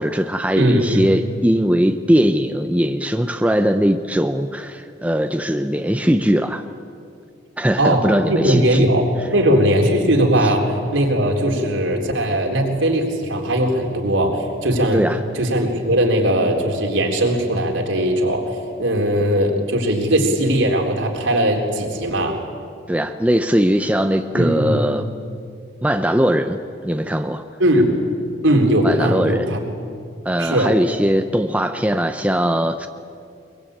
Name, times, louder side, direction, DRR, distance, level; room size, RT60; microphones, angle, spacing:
voice 1, 0.0-6.6 7.6-8.9 10.4-10.5 14.9-15.2 22.9-25.1 25.8-27.4 28.8-29.5 30.2-32.9, equal, 5° right, 7 dB, 0.6 m, -20 dB
voice 2, 0.6-1.1 7.8-9.0 9.3-15.0 15.3-18.4 18.8-22.4 24.3-24.8 27.6-28.0 28.4-29.6 30.4-30.7, right 1 dB, 70° right, 1 dB, 3.8 m, -19 dB
24.0 x 23.0 x 8.8 m, 2.4 s
head